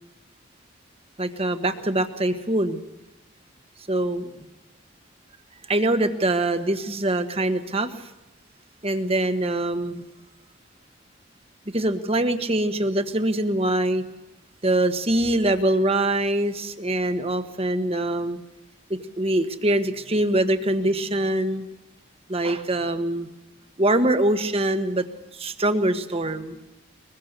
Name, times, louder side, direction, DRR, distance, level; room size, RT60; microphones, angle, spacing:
voice 1, 1.2-2.8 3.9-4.3 5.7-8.1 8.8-10.0 11.7-14.0 14.6-18.4 18.9-21.6 22.3-23.3 23.8-25.0 25.3-26.6, right 1 dB, 30° right, 9 dB, 1.5 m, -23 dB
22.5 x 22.0 x 6.8 m, 0.91 s
head